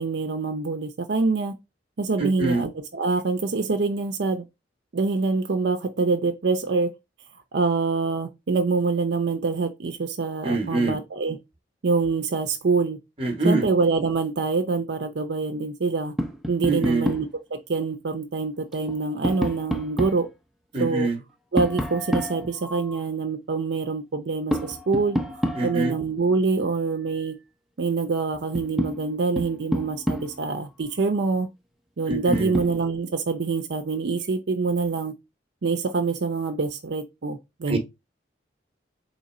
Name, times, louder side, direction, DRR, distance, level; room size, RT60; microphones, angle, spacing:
voice 1, 0.0-1.5 2.0-4.4 4.9-6.9 7.5-11.4 11.8-13.0 13.4-16.1 16.5-20.3 20.8-21.1 21.5-25.2 25.6-27.4 27.8-31.5 32.0-35.1 35.6-37.8, right 4 dB, 65° right, 0.5 m, -25 dB
voice 2, 2.2-2.6 10.4-11.0 13.2-13.7 16.7-17.1 20.7-21.2 25.5-25.9 32.1-32.5 37.7-37.8, right 2 dB, 30° right, 0.8 m, -24 dB
Tap, 16.2-17.4 18.7-20.3 21.6-23.0 24.5-26.0 27.9-28.0 28.3-30.5 32.1-32.8, equal, ahead, 0.4 m, -29 dB
3.8 x 3.0 x 4.1 m
head